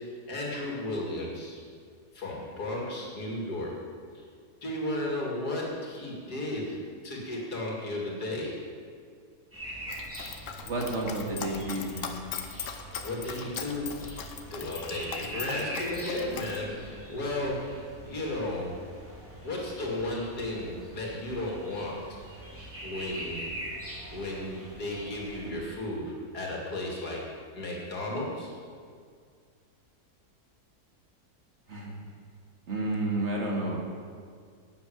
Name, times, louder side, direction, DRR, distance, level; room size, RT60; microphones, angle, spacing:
voice 1, 0.0-1.6 2.1-3.8 4.1-4.2 4.6-8.6 13.0-14.1 14.5-18.8 19.4-22.0 22.8-23.5 24.1-27.2 27.5-28.5, left 1 dB, 90° left, -2 dB, 3.1 m, -34 dB
sound 1, 9.5-25.5, right 1 dB, 10° right, 3.3 m, -43 dB
Dog, 9.9-16.6, left 7 dB, 60° left, 1.2 m, -39 dB
voice 2, 10.7-12.2 31.7-32.0 32.7-33.8, right 2 dB, 45° right, -1 dB, 2.3 m, -31 dB
11.0 x 8.2 x 8.7 m, 2.1 s
omnidirectional pair, 1.6 m